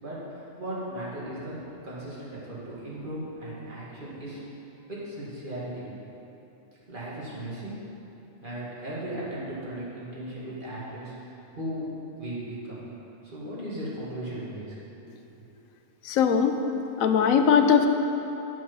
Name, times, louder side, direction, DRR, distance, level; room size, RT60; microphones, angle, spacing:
voice 1, 0.0-1.6 1.8-4.4 4.9-5.8 6.9-7.8 8.4-11.9 12.2-12.9 13.2-15.3, right 1 dB, 40° right, -8 dB, 2.2 m, -37 dB
voice 2, 16.1-16.6 17.0-17.9, left 7 dB, 90° left, 6 dB, 1.1 m, -20 dB
8.3 x 7.5 x 5.5 m, 3.0 s
omnidirectional pair, 1.4 m